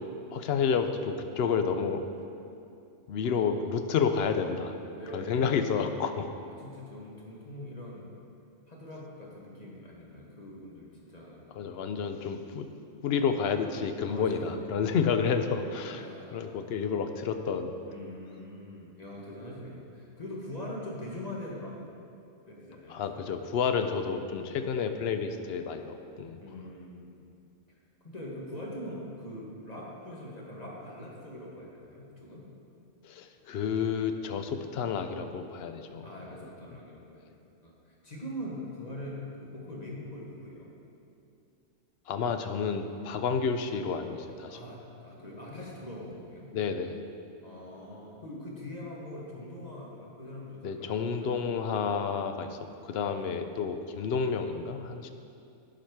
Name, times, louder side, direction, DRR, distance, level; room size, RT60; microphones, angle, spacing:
voice 1, 0.3-2.0 3.1-4.7 5.1-6.3 11.6-12.7 13.0-16.0 16.3-17.7 22.9-26.4 33.0-36.1 42.1-44.6 46.5-47.0 50.6-52.6 52.8-55.1, left 6 dB, 65° left, 7 dB, 0.7 m, -30 dB
voice 2, 3.2-3.6 4.9-5.6 6.3-8.1 8.7-11.4 14.0-15.2 15.9-16.7 17.9-21.8 22.5-23.2 26.4-27.1 28.0-32.5 36.0-37.4 37.6-40.7 44.5-46.5 47.4-51.3 53.1-53.4, left 1 dB, 35° left, -3 dB, 1.3 m, -43 dB
11.5 x 5.0 x 4.7 m, 2.6 s
omnidirectional pair, 1.3 m